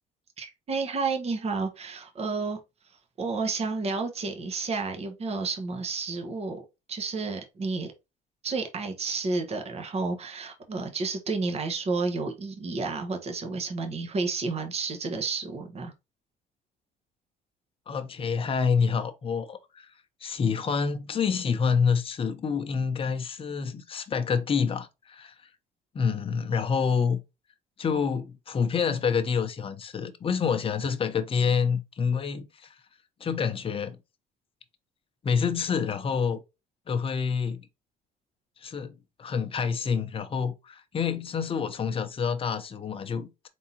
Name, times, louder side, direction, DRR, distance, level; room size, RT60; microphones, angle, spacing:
voice 1, 0.4-2.6 3.2-6.6 6.9-7.9 8.4-15.9, right 4 dB, 40° right, 1.1 m, -31 dB
voice 2, 17.9-19.9 20.2-25.3 25.9-27.2 27.8-32.7 33.2-34.0 35.2-36.4 36.9-37.6 38.6-43.5, left 6 dB, 35° left, 0.8 m, -27 dB
4.0 x 3.6 x 2.8 m
cardioid pair, 110°, 17 cm